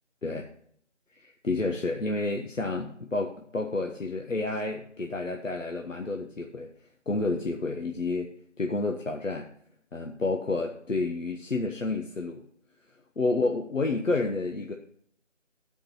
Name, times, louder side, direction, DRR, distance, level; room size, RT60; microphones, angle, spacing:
voice 1, 1.1-6.7 7.1-8.3 8.6-9.5 9.9-12.4 13.2-14.7, left 3 dB, 85° left, 3 dB, 1.3 m, -30 dB
13.0 x 5.2 x 5.8 m, 0.63 s
figure-of-eight pair, 165°, 38 cm